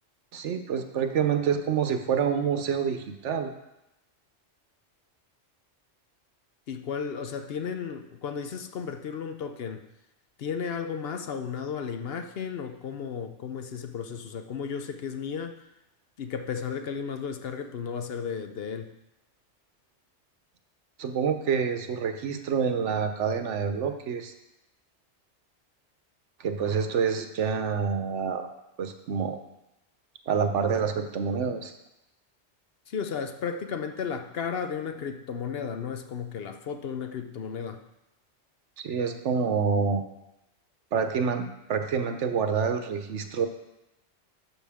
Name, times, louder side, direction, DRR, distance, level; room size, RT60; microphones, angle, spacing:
voice 1, 0.3-3.5 21.0-24.3 26.4-28.5 28.8-29.4 30.3-31.7 38.8-40.0 40.9-43.5, right 6 dB, 85° right, 7 dB, 1.1 m, -27 dB
voice 2, 6.7-9.8 10.4-15.6 16.2-18.9 32.9-37.8, left 6 dB, 60° left, 7 dB, 0.9 m, -34 dB
11.5 x 6.4 x 3.5 m, 0.90 s
omnidirectional pair, 1.2 m